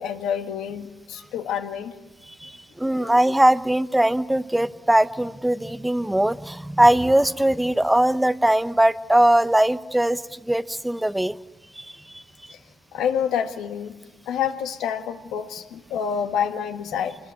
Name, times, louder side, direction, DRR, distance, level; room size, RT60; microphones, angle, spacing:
voice 1, 0.0-1.9 2.8-3.2 12.5-12.6 12.9-14.0 14.3-17.2, left 8 dB, 90° left, 6 dB, 1.7 m, -28 dB
voice 2, 2.4-11.4 11.8-12.5, right 1 dB, 5° right, 13 dB, 0.9 m, -21 dB
26.0 x 20.5 x 9.2 m, 1.2 s
cardioid pair, 90°, 0 cm